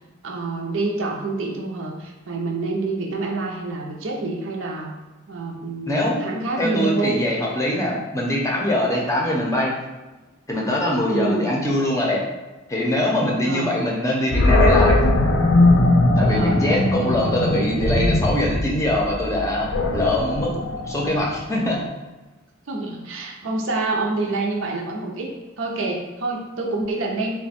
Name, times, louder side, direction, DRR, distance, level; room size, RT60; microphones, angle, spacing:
voice 1, 0.2-4.9 5.3-7.2 11.1-11.5 13.4-13.8 16.2-16.6 22.7-25.3 25.6-27.3, right 3 dB, 75° right, 0 dB, 0.6 m, -27 dB
voice 2, 5.9-6.2 6.6-9.8 10.5-12.3 12.7-15.0 16.2-20.6 20.9-21.9, left 1 dB, 15° left, -3 dB, 0.6 m, -23 dB
Animal, 14.3-21.4, left 2 dB, 70° left, 0.5 m, -19 dB
3.4 x 2.2 x 4.1 m, 1.1 s
head